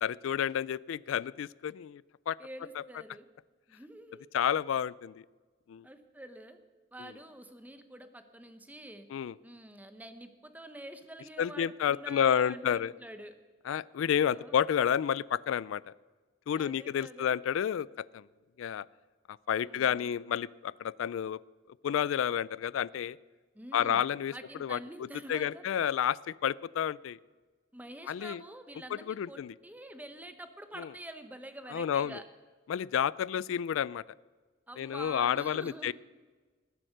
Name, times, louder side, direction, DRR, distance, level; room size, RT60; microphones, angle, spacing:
voice 1, 0.0-2.4 4.3-5.2 5.7-5.8 7.0-7.1 9.1-9.3 11.4-12.9 13.7-15.8 16.5-18.2 18.6-18.9 19.3-21.4 21.8-23.2 23.7-24.3 24.6-24.8 25.3-27.2 28.1-28.4 28.9-29.5 30.8-30.9 31.7-32.2 32.7-34.0 34.8-35.9, left 9 dB, 90° left, 21 dB, 0.3 m, -30 dB
voice 2, 2.4-3.3 3.7-4.3 5.8-6.6 6.9-9.1 9.4-13.3 14.0-14.6 16.6-17.3 19.6-20.1 23.5-24.0 24.3-25.6 27.7-32.2 34.7-35.9, right 1 dB, 10° right, 9 dB, 0.9 m, -47 dB
19.0 x 7.7 x 6.6 m, 1.3 s
head